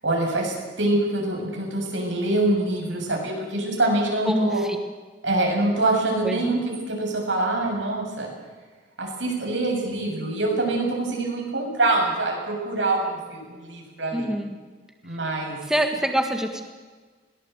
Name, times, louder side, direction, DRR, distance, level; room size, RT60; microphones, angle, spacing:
voice 1, 0.0-4.6 5.2-8.3 9.0-14.3 15.0-15.6, right 2 dB, 90° right, 0 dB, 7.6 m, -25 dB
voice 2, 4.2-4.8 6.2-6.4 14.1-14.5 15.7-16.6, equal, 5° right, 3 dB, 1.7 m, -24 dB
21.5 x 19.0 x 8.1 m, 1.4 s
head